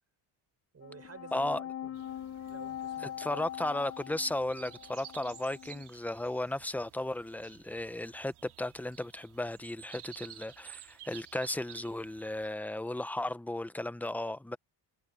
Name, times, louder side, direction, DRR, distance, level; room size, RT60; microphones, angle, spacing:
voice 1, 0.7-2.0 2.5-3.7, right 5 dB, 30° right, 5.4 m, -50 dB
sound 1, 0.8-5.8, left 11 dB, 30° left, 0.9 m, -42 dB
voice 2, 1.3-1.6 3.2-14.6, left 1 dB, 5° left, 0.7 m, -35 dB
sound 2, 1.9-12.5, right 13 dB, 90° right, 4.1 m, -53 dB
cardioid pair, 125°, 48 cm